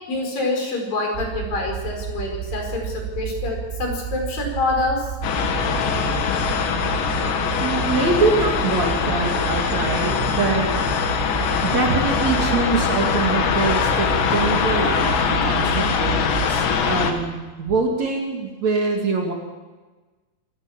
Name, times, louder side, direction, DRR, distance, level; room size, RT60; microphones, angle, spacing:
voice 1, 0.1-5.0 13.1-13.2, left 3 dB, 55° left, 1 dB, 6.7 m, -26 dB
sound 1, 1.1-16.5, right 9 dB, 75° right, 2.6 m, -31 dB
sound 2, 5.2-17.1, left 6 dB, 85° left, 4.2 m, -22 dB
voice 2, 7.6-10.7 11.6-19.3, right 4 dB, 45° right, 0 dB, 3.3 m, -24 dB
28.5 x 16.5 x 7.3 m, 1.3 s
omnidirectional pair, 5.0 m